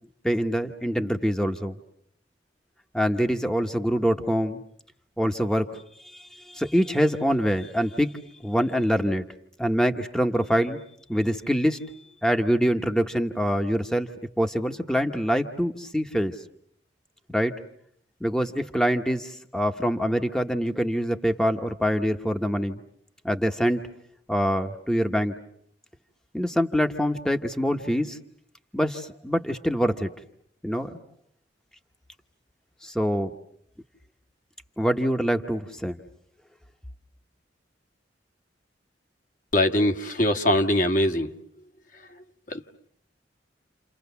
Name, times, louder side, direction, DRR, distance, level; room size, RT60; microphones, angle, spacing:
voice 1, 0.2-1.8 2.9-4.6 5.2-8.1 8.4-9.2 9.6-10.8 11.1-11.8 12.2-14.1 14.4-16.3 17.3-17.5 18.2-22.8 23.2-23.9 24.3-25.3 26.3-28.2 28.7-30.1 30.6-31.0 32.8-33.3 34.8-36.0, equal, 5° left, 5 dB, 1.1 m, -25 dB
voice 2, 39.5-41.3 42.5-42.6, left 1 dB, 45° left, 4 dB, 1.6 m, -22 dB
29.5 x 29.5 x 7.0 m, 0.68 s
head